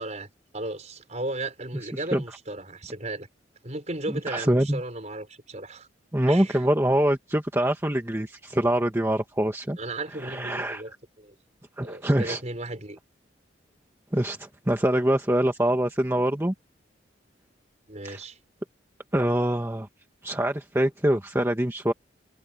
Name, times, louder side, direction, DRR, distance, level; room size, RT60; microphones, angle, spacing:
voice 1, 0.0-3.3 3.6-5.9 6.3-6.6 9.8-11.3 11.8-13.0 17.9-18.4, right 2 dB, 40° right, 5.5 m, -35 dB
voice 2, 4.1-4.8 6.1-9.8 10.2-10.8 11.8-12.4 14.1-16.5 18.0-18.2 19.1-19.9 20.2-21.9, right 1 dB, 15° right, 1.3 m, -24 dB
head